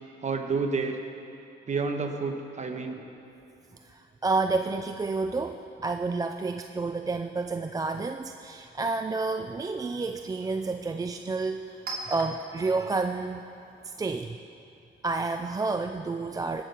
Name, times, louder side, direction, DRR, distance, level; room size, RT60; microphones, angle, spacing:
voice 1, 0.2-1.0 1.7-3.0, right 4 dB, 35° right, 4 dB, 1.3 m, -29 dB
voice 2, 3.8-11.8 12.1-13.4 13.8-14.4 15.0-16.6, right 3 dB, 20° right, 7 dB, 0.4 m, -30 dB
Chink clink, 8.9-14.4, right 2 dB, 55° right, 2.6 m, -45 dB
18.0 x 6.5 x 5.3 m, 2.9 s
cardioid pair, 90°, 20 cm